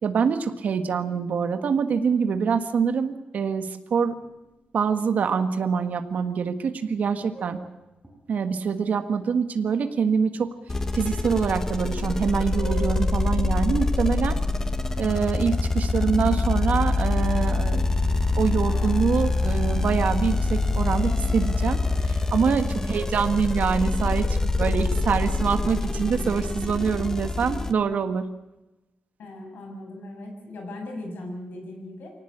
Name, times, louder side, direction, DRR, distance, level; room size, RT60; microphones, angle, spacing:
voice 1, 0.0-4.1 4.7-7.6 8.3-10.5 10.9-14.4 15.0-17.9 18.4-28.2, right 6 dB, 60° right, 8 dB, 1.6 m, -25 dB
sound 1, 4.2-4.9 5.3-5.5 6.1-6.5 6.8-8.5 9.2-9.3 10.1-10.8 11.1-11.3 11.6-14.9 15.4-18.0 18.2-19.1 19.6-20.5 20.9-22.4 22.6-23.5, right 2 dB, 5° right, 6.1 m, -46 dB
sound 2, 10.7-27.7, left 3 dB, 15° left, 1.0 m, -25 dB
sound 3, 18.7-28.0, left 2 dB, 45° left, 2.8 m, -47 dB
voice 2, 29.2-32.1, left 1 dB, 80° left, 3 dB, 7.9 m, -38 dB
24.0 x 18.0 x 8.7 m, 1.0 s
wide cardioid pair, 175°, 3 cm